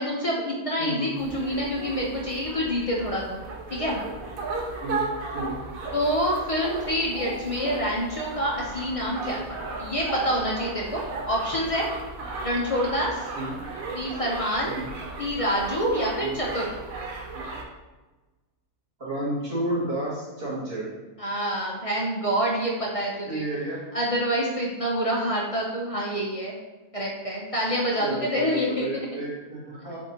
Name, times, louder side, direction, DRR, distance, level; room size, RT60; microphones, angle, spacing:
voice 1, 0.0-3.4 3.7-4.0 5.9-11.9 12.4-13.3 13.9-14.8 15.2-16.6 21.2-23.4 23.9-26.5 26.9-29.1, equal, 60° left, -3 dB, 0.3 m, -27 dB
voice 2, 0.8-1.1 4.8-5.1 5.3-5.5 13.4-13.5 14.6-14.9 16.2-16.4 17.3-17.5 19.0-20.9 23.3-23.8 28.0-30.0, right 1 dB, 40° right, -9 dB, 1.8 m, -31 dB
sound 1, 1.2-17.6, right 3 dB, 70° right, 1.1 m, -35 dB
7.0 x 2.7 x 2.8 m, 1.2 s
omnidirectional pair, 1.6 m